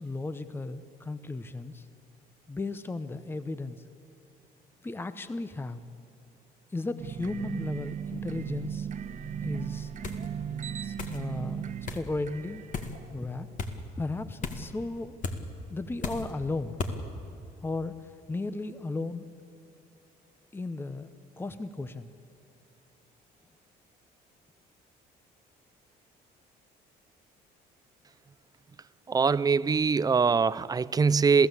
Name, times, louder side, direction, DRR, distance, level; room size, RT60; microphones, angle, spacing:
voice 1, 0.0-1.8 2.5-3.8 4.8-5.8 6.7-8.9 9.4-9.9 10.8-12.6 13.1-13.5 14.0-15.2 15.7-16.8 17.6-17.9 18.3-19.3 20.5-21.1 21.4-22.1, left 2 dB, 15° left, 0.8 m, -35 dB
sound 1, 7.0-13.6, right 8 dB, 50° right, 1.2 m, -37 dB
sound 2, 10.0-10.3 11.0-11.2 11.9-12.1 12.7-13.0 13.6-13.7 14.4-14.7 15.2-15.4 16.0-16.3 16.8-17.0, left 4 dB, 50° left, 2.1 m, -34 dB
voice 2, 29.1-31.5, right 5 dB, 20° right, 0.5 m, -23 dB
27.5 x 16.0 x 8.3 m
cardioid pair, 110°, 17 cm